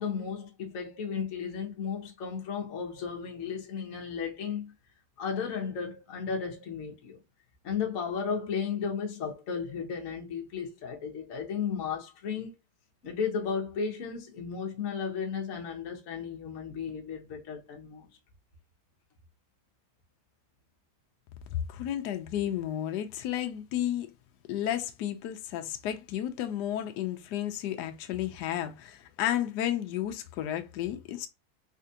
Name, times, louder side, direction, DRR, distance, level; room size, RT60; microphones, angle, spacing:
voice 1, 0.0-4.7 5.2-7.2 7.6-12.5 13.0-18.1, left 6 dB, 50° left, 1.1 m, -34 dB
voice 2, 21.5-24.1 24.5-31.3, left 11 dB, 70° left, 1.0 m, -32 dB
4.3 x 2.4 x 2.7 m
omnidirectional pair, 2.3 m